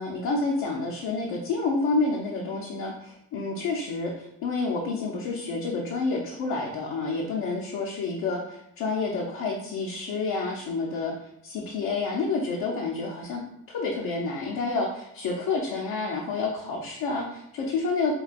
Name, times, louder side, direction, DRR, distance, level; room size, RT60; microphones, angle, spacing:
voice 1, 0.0-13.4 13.7-18.1, left 3 dB, 70° left, -1 dB, 0.7 m, -29 dB
4.9 x 2.4 x 2.4 m, 0.78 s
supercardioid pair, 60°, 36 cm